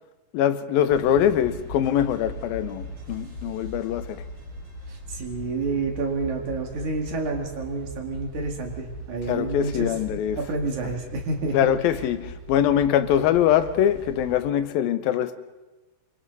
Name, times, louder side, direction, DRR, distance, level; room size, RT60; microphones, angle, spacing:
voice 1, 0.3-4.2 9.3-10.4 11.5-15.4, left 10 dB, 80° left, 2.6 m, -23 dB
sound 1, 0.9-14.4, equal, 80° right, 6.8 m, -39 dB
voice 2, 4.9-11.7, right 3 dB, 60° right, 3.4 m, -29 dB
26.5 x 24.0 x 4.1 m
omnidirectional pair, 4.2 m